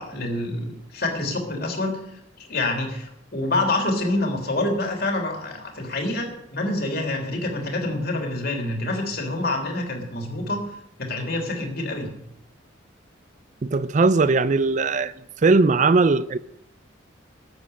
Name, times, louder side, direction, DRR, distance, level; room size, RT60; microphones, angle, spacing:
voice 1, 0.0-2.0 2.4-10.6 11.0-12.1, left 2 dB, 50° left, 3.3 m, -27 dB
voice 2, 13.6-15.1 15.4-16.4, right 3 dB, 40° right, 0.4 m, -19 dB
12.5 x 7.4 x 9.7 m
head